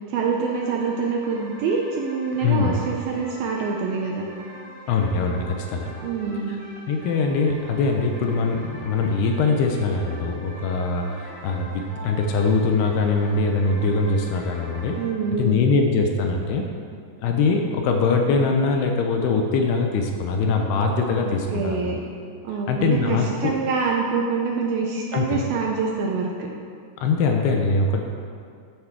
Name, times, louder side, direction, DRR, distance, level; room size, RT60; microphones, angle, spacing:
voice 1, 0.1-4.3 6.0-6.6 15.0-15.7 21.2-22.0 22.4-26.5, right 4 dB, 75° right, -1 dB, 2.3 m, -26 dB
sound 1, 0.5-15.1, right 1 dB, 55° right, 4.4 m, -43 dB
voice 2, 2.4-2.8 4.9-5.9 6.9-15.0 15.3-16.7 17.2-21.9 22.7-23.5 25.1-25.4 27.0-28.0, left 4 dB, 75° left, 3 dB, 2.7 m, -22 dB
10.5 x 7.7 x 6.1 m, 2.3 s
omnidirectional pair, 5.1 m